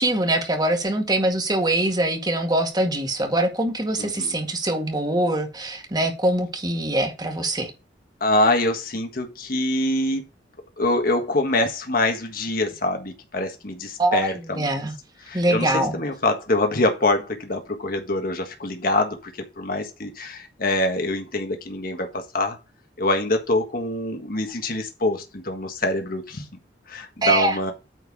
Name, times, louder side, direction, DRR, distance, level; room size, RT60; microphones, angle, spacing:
voice 1, 0.0-7.7 14.0-14.3 14.5-14.9 15.3-16.0 27.2-27.6, right 1 dB, 25° right, 4 dB, 1.9 m, -23 dB
voice 2, 4.0-4.4 8.2-10.2 10.8-14.7 15.2-19.3 19.6-22.6 23.0-26.5 26.9-27.7, left 2 dB, 55° left, 4 dB, 1.6 m, -25 dB
9.2 x 4.6 x 4.7 m, 0.27 s
head